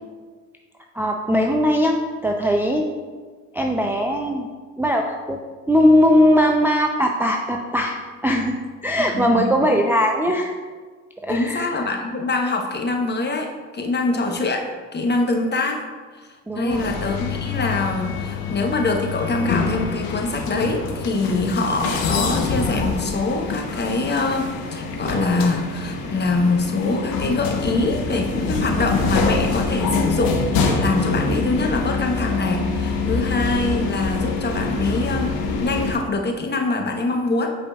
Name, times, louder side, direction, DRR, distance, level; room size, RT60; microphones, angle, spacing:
voice 1, 0.9-2.9 3.5-4.5 4.8-5.4 5.7-8.0 8.2-8.6 8.8-10.5 11.2-11.7 16.5-16.9 33.0-33.2, equal, 5° right, 1 dB, 0.5 m, -19 dB
voice 2, 9.1-9.8 11.3-15.8 16.1-16.3 16.5-37.6, left 2 dB, 25° left, 3 dB, 0.9 m, -24 dB
sound 1, 16.7-35.9, left 4 dB, 65° left, 1.0 m, -25 dB
8.2 x 5.0 x 2.3 m, 1.5 s
hypercardioid pair, 55°, 38 cm